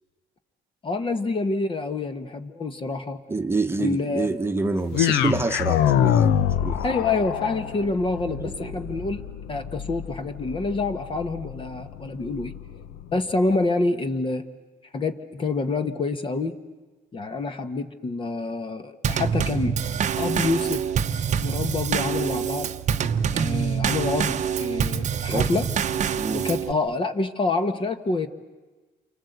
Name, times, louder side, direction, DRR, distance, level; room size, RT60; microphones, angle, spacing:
voice 1, 0.8-3.2 3.8-4.4 6.8-9.2 9.5-12.5 13.1-14.5 14.9-16.6 17.1-19.7 20.2-20.9 21.4-22.7 23.3-25.7 26.3-28.3, left 3 dB, 30° left, 8 dB, 1.4 m, -27 dB
voice 2, 3.3-6.3 6.6-6.9 8.4-8.8 25.3-25.5 26.2-26.5, right 3 dB, 15° right, 5 dB, 1.2 m, -27 dB
sound 1, 4.9-13.1, left 10 dB, 85° left, 0.9 m, -26 dB
Drum kit / Snare drum / Bass drum, 19.0-26.7, right 7 dB, 45° right, 0.8 m, -25 dB
28.5 x 24.5 x 8.1 m, 1.2 s
cardioid pair, 110°, 17 cm